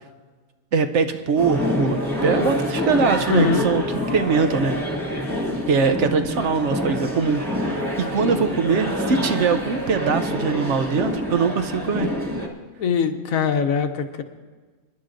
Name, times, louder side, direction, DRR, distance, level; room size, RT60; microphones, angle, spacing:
voice 1, 0.7-3.8 4.1-4.8 5.7-12.1, right 5 dB, 65° right, 9 dB, 0.9 m, -22 dB
sound 1, 1.4-12.5, left 1 dB, 10° right, 1.7 m, -26 dB
voice 2, 3.3-3.7 12.8-14.2, left 6 dB, 75° left, 8 dB, 1.2 m, -22 dB
26.5 x 10.5 x 2.6 m, 1.4 s
omnidirectional pair, 1.5 m